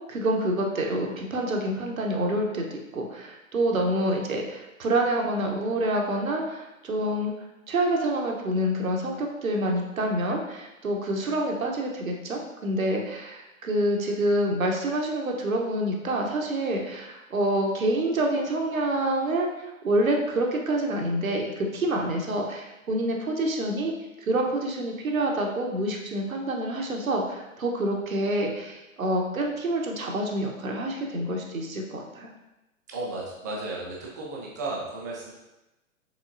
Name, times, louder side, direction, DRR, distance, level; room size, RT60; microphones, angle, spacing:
voice 1, 0.1-7.3 7.7-23.9 24.2-32.3, right 1 dB, 75° right, 1 dB, 1.0 m, -27 dB
voice 2, 32.9-35.3, right 2 dB, 15° right, -3 dB, 0.4 m, -34 dB
5.1 x 3.6 x 2.6 m, 0.98 s
figure-of-eight pair, 120°, 41 cm